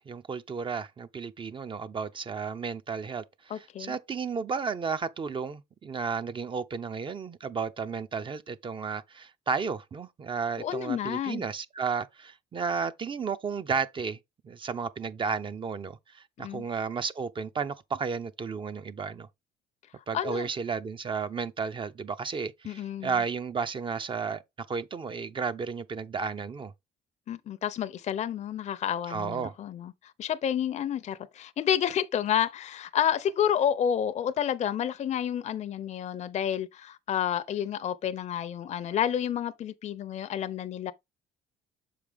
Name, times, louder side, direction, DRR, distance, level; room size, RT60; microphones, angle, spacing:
voice 1, 0.1-14.2 14.4-19.3 20.1-24.4 24.7-26.7 29.1-29.5, right 5 dB, 30° right, 0.5 m, -33 dB
voice 2, 3.5-3.9 10.6-11.5 16.4-16.6 20.1-20.5 22.6-23.2 27.3-40.9, left 9 dB, 45° left, 0.6 m, -30 dB
6.7 x 5.0 x 3.4 m
cardioid pair, 110°, 17 cm